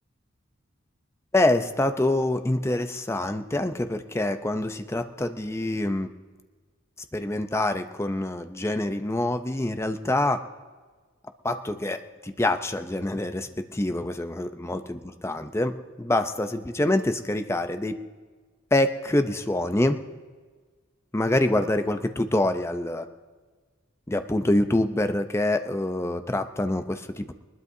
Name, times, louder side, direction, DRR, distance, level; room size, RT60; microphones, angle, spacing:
voice 1, 1.3-6.1 7.1-10.4 11.4-18.0 18.7-20.0 21.1-23.1 24.1-27.3, left 1 dB, 15° left, 8 dB, 0.6 m, -26 dB
21.5 x 20.0 x 2.7 m, 1.4 s
head